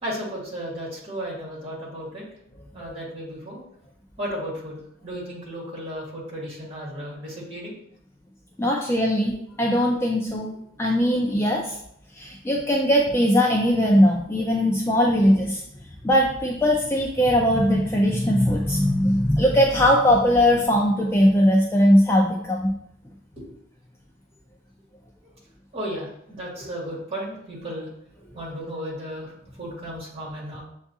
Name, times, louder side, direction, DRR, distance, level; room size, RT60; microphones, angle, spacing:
voice 1, 0.0-2.2 2.7-3.6 4.2-7.8 23.3-23.5 25.2-25.3 25.7-27.9 28.3-30.6, equal, 30° right, -5 dB, 1.7 m, -34 dB
voice 2, 8.6-10.5 10.8-11.8 12.1-15.6 16.0-22.7, equal, 15° left, -1 dB, 0.3 m, -20 dB
6.9 x 2.4 x 2.7 m, 0.71 s
head